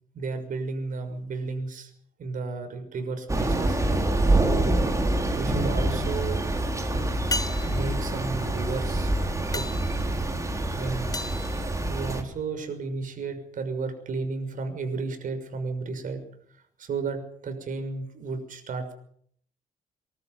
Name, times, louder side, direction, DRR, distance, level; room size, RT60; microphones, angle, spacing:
voice 1, 0.1-1.9 2.2-3.8 4.3-4.8 5.4-6.4 7.5-9.1 9.5-9.7 10.8-11.1 11.9-16.2 16.8-18.9, right 4 dB, 65° right, 7 dB, 6.4 m, -33 dB
Thunder / Rain, 3.3-12.2, right 2 dB, 20° right, 4.2 m, -26 dB
sound 1, 7.3-12.5 16.9-17.0, left 2 dB, 25° left, 1.3 m, -37 dB
26.0 x 13.5 x 9.6 m, 0.64 s
cardioid pair, 100°, 14 cm